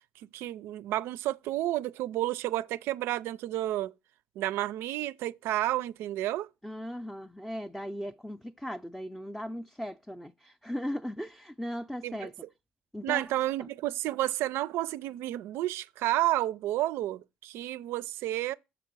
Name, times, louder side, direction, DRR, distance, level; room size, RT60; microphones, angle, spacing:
voice 1, 0.3-3.9 4.4-6.5 12.0-12.3 13.0-18.5, right 15 dB, 75° right, 0.4 m, -31 dB
voice 2, 6.6-12.4 12.9-13.3 13.6-13.7, equal, 5° left, 0.5 m, -38 dB
6.9 x 4.6 x 6.1 m
supercardioid pair, 80°, 4 cm